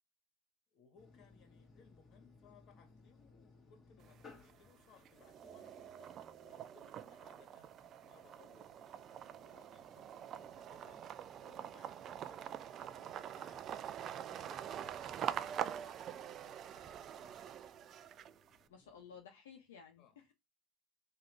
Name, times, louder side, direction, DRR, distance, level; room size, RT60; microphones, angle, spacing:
voice 1, 0.7-11.0 11.4-17.9 20.0-20.3, left 6 dB, 50° left, 2.0 m, -66 dB
sound 1, 1.0-19.2, left 4 dB, 25° left, 2.0 m, -66 dB
sound 2, 4.0-4.7 5.1-18.6, right 9 dB, 40° right, 0.4 m, -45 dB
voice 2, 18.7-20.3, left 6 dB, 85° left, 0.9 m, -55 dB
3.8 x 2.9 x 4.6 m
hypercardioid pair, 100°, 0 cm